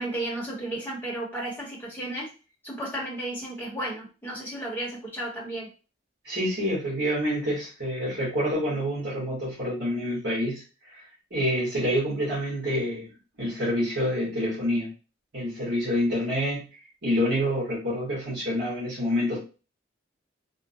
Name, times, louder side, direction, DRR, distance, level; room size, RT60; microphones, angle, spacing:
voice 1, 0.0-2.3 2.6-5.7, right 1 dB, 10° left, -4 dB, 0.9 m, -33 dB
voice 2, 6.2-11.0 11.3-13.1 13.4-14.9 15.3-16.6 17.0-19.4, equal, 60° right, -8 dB, 1.4 m, -27 dB
3.6 x 2.1 x 2.7 m, 0.33 s
head